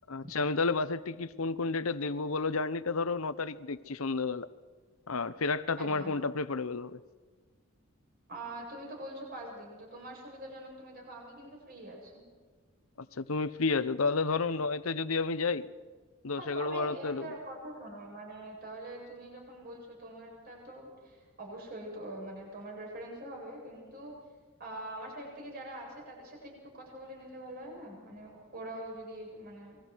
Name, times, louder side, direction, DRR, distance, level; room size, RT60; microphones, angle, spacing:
voice 1, 0.1-4.5 5.1-7.0 13.0-15.7 16.2-17.3, left 4 dB, 75° left, 13 dB, 0.9 m, -31 dB
voice 2, 5.8-6.1 8.3-12.2 16.4-24.1 24.6-29.8, right 1 dB, 45° right, -1 dB, 7.7 m, -44 dB
28.0 x 21.5 x 4.7 m, 1.5 s
head